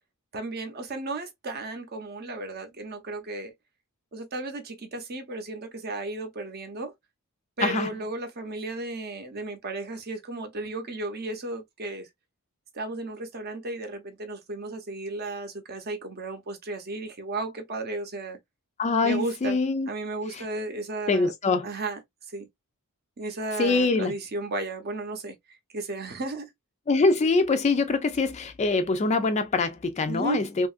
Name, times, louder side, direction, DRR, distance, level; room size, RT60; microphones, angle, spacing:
voice 1, 0.3-3.5 4.1-6.9 7.6-12.1 12.7-18.4 19.0-19.6 19.8-21.3 21.6-22.0 22.3-22.5 23.2-26.5 30.1-30.4, right 2 dB, 45° right, 0.7 m, -34 dB
voice 2, 18.8-19.9 20.3-20.4 21.1-21.7 23.6-24.1 26.9-30.7, left 3 dB, 30° left, 0.3 m, -24 dB
2.8 x 2.5 x 2.3 m
head